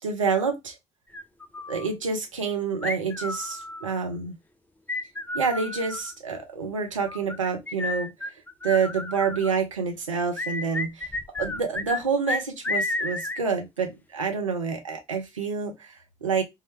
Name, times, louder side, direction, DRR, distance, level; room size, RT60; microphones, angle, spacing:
voice 1, 0.0-0.7 1.7-4.4 5.3-8.1 8.6-11.1 11.4-16.4, right 5 dB, 85° right, 0.5 m, -28 dB
sound 1, 1.1-1.9 2.8-4.0 4.9-6.1 7.1-9.5 10.4-12.0 12.3-13.4, left 2 dB, 10° left, 0.4 m, -32 dB
3.6 x 2.1 x 3.0 m
figure-of-eight pair, 45°, 16 cm